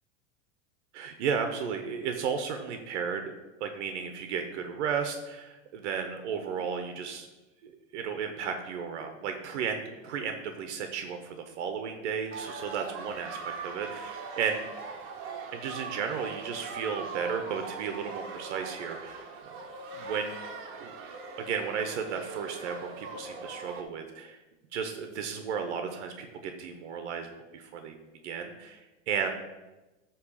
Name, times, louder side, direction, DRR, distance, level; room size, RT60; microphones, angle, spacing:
voice 1, 0.9-3.3 3.6-7.3 7.6-14.7 15.5-19.5 19.9-20.3 20.8-21.0 21.4-24.4 24.7-28.0 28.2-28.8 29.1-29.3, right 6 dB, 70° right, 6 dB, 1.1 m, -34 dB
sound 1, 12.3-23.8, right 4 dB, 35° right, 1.3 m, -41 dB
9.5 x 3.3 x 6.8 m, 1.1 s
supercardioid pair, 135°, 36 cm